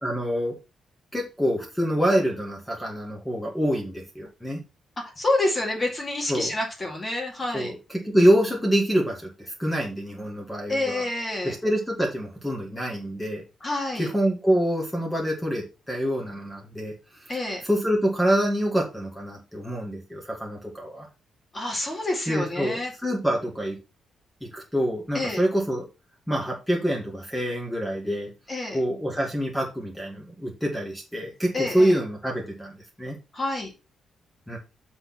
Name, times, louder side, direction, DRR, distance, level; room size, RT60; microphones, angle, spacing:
voice 1, 0.0-0.5 1.1-4.6 6.3-6.5 7.5-11.0 11.4-13.4 14.0-16.9 17.2-17.3 17.6-21.1 22.3-23.8 24.4-25.9 26.3-28.3 28.7-33.2 34.5-34.6, equal, 5° left, 0 dB, 2.3 m, -26 dB
voice 2, 5.0-7.7 10.7-11.6 13.6-14.1 17.3-17.6 21.5-22.9 25.1-25.4 28.5-28.8 31.5-32.0 33.3-33.7, left 2 dB, 25° left, 1 dB, 2.5 m, -28 dB
7.8 x 4.3 x 5.9 m, 0.29 s
cardioid pair, 135°, 0 cm